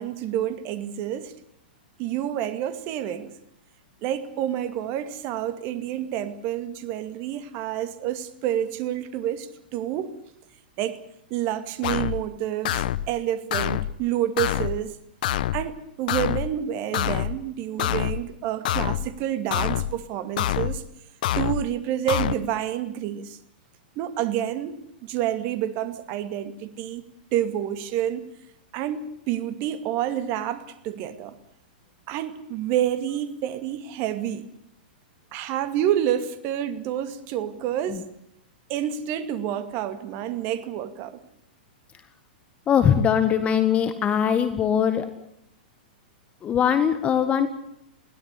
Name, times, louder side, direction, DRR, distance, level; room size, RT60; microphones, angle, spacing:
voice 1, 0.0-1.3 2.0-3.3 4.0-10.1 10.8-11.0 11.3-15.0 15.5-20.8 21.3-23.4 24.0-27.0 27.3-28.2 28.7-31.4 32.1-34.5 35.3-38.1 38.7-41.2, right 11 dB, 40° right, 2.4 m, -28 dB
sound 1, 11.8-12.2 12.6-13.1 13.5-13.9 14.4-14.8 15.2-15.6 16.1-16.5 16.9-17.4 17.8-18.2 18.6-19.1 19.5-19.9 20.4-20.8 21.2-21.6 22.1-22.4, left 12 dB, 60° left, 1.0 m, -26 dB
voice 2, 42.7-45.1 46.4-47.5, left 8 dB, 25° left, 1.7 m, -21 dB
21.5 x 17.0 x 9.9 m
hypercardioid pair, 115°, 5 cm